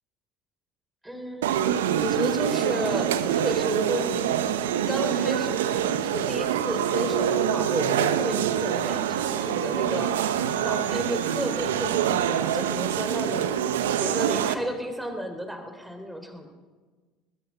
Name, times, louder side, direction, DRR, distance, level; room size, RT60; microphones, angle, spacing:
voice 1, 1.0-1.5 2.0-4.3 4.9-10.2 10.6-13.5 14.0-16.5, equal, 5° right, 6 dB, 4.0 m, -32 dB
sound 1, 1.4-14.5, right 9 dB, 80° right, 1.1 m, -25 dB
22.5 x 20.0 x 6.0 m, 1.3 s
hypercardioid pair, 65°, 0 cm